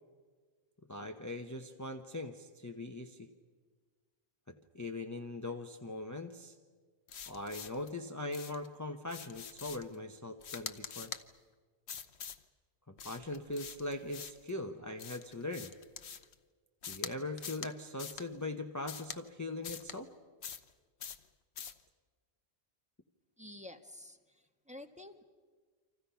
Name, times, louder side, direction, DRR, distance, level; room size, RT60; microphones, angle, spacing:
voice 1, 0.9-3.3 4.5-6.5 7.3-11.1 12.9-15.7 16.9-20.1, left 2 dB, 15° left, 5 dB, 0.9 m, -41 dB
sound 1, 7.1-7.9 8.3-8.7 9.1-9.9 10.4-11.2 11.9-12.4 13.0-14.5 15.0-16.3 16.8-17.1 17.4-17.7 18.0-18.3 18.9-19.2 19.6-20.0 20.4-20.7 21.0-21.2 21.6-21.8, left 7 dB, 75° left, 1.2 m, -45 dB
voice 2, 23.4-24.2 24.7-25.2, left 1 dB, 5° right, 4 dB, 1.3 m, -49 dB
29.5 x 26.0 x 5.7 m, 1.5 s
omnidirectional pair, 1.1 m